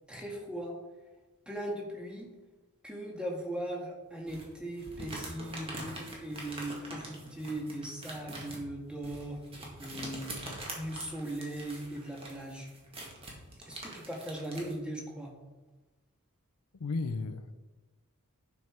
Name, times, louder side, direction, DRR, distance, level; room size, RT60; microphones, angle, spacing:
voice 1, 0.1-0.7 1.4-2.3 2.8-12.7 13.7-15.3, right 1 dB, 5° right, -1 dB, 1.7 m, -39 dB
sound 1, 4.3-14.7, right 1 dB, 25° right, 1.9 m, -44 dB
voice 2, 16.7-17.5, left 3 dB, 85° left, 11 dB, 0.6 m, -34 dB
11.0 x 5.6 x 4.5 m, 1.2 s
head